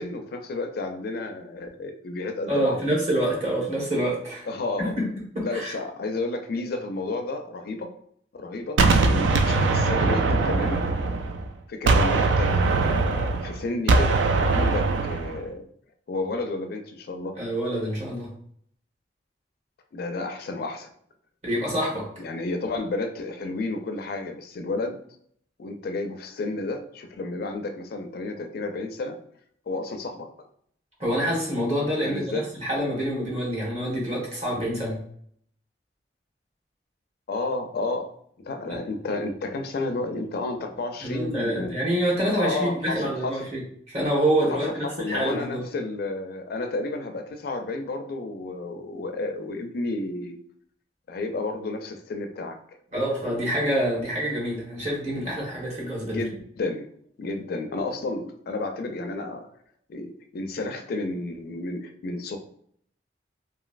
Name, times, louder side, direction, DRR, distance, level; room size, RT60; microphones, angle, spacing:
voice 1, 0.0-2.8 4.5-4.9 5.4-7.9 8.3-10.9 11.7-15.7 16.1-17.4 19.9-20.9 22.2-25.0 25.6-29.2 29.7-30.3 32.0-32.4 37.3-41.7 42.4-43.4 44.5-44.6 45.0-50.4 51.1-52.6 56.0-56.9 57.2-59.5 59.9-62.4, left 2 dB, 60° left, 5 dB, 0.4 m, -31 dB
voice 2, 2.5-4.5 4.8-5.0 5.3-5.7 17.4-18.3 21.4-22.1 31.0-35.0 38.7-38.8 41.0-43.6 43.9-45.6 52.9-56.2, right 1 dB, 40° right, -4 dB, 1.2 m, -26 dB
Gunshot gunfire, 8.8-11.5 11.9-15.4, right 3 dB, 90° right, 0.3 m, -21 dB
3.0 x 2.7 x 2.4 m, 0.65 s
head